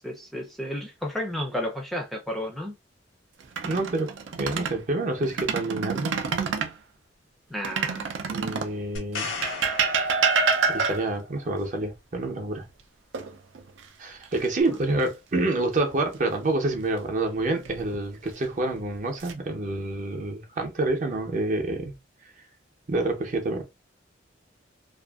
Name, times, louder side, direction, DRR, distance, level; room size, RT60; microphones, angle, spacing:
voice 1, 0.0-2.8 7.5-8.2, left 1 dB, ahead, 0.4 m, -32 dB
sound 1, 3.4-4.8 5.2-6.8 7.6-8.8 9.4-11.2 13.1-13.8 14.2-14.5 17.4-18.0 18.7-19.3, right 5 dB, 80° right, 0.5 m, -27 dB
voice 2, 3.6-6.2 8.3-9.3 10.7-12.7 14.0-21.9 22.9-23.6, right 2 dB, 45° right, 0.7 m, -28 dB
sound 2, 9.0-10.9 14.6-14.7, left 4 dB, 80° left, 0.8 m, -36 dB
2.5 x 2.5 x 2.3 m
head